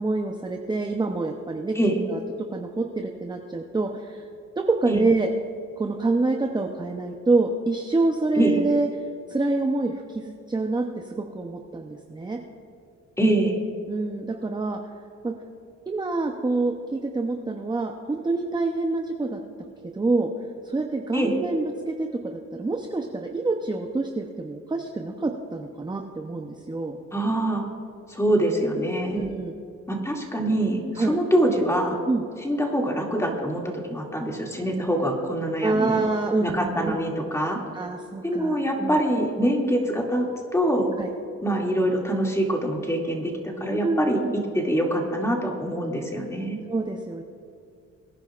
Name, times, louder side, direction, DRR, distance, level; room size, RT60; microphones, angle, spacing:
voice 1, 0.0-1.8 2.1-2.2 2.5-4.3 4.6-5.3 5.8-8.9 9.3-12.4 13.9-14.8 15.2-15.3 15.9-19.4 19.8-20.3 20.6-27.0 29.1-29.5 31.0-31.2 32.1-32.2 35.6-37.0 37.7-39.0 41.0-41.1 43.8-44.3 46.7-47.2, right 3 dB, 15° right, 3 dB, 0.8 m, -26 dB
voice 2, 13.2-13.6 21.1-21.3 27.1-27.6 28.1-29.3 29.9-32.0 32.4-36.0 36.4-37.6 38.2-40.3 40.5-40.9 41.4-44.2 44.5-46.6, right 1 dB, 10° left, 0 dB, 2.4 m, -24 dB
23.0 x 10.5 x 2.5 m, 2.5 s
cardioid pair, 90°, 30 cm